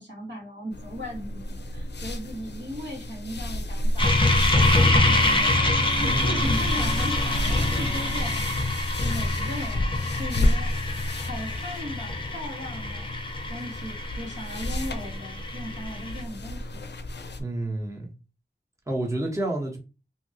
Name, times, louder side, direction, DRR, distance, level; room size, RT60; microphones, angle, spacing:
voice 1, 0.0-4.1 5.1-5.7 6.0-8.4 9.0-10.7 11.1-13.1 13.5-16.9, equal, 80° right, 1.5 m, -37 dB
sound 1, 0.7-17.4, left 1 dB, 75° left, 0.5 m, -31 dB
sound 2, 4.0-16.2, left 2 dB, 30° left, 0.7 m, -25 dB
Bowed string instrument, 4.7-8.9, right 2 dB, 45° right, 1.1 m, -37 dB
voice 2, 6.1-6.7 17.4-18.1 18.9-19.8, right 2 dB, 15° right, 1.0 m, -29 dB
2.8 x 2.8 x 2.8 m
wide cardioid pair, 40°, 18 cm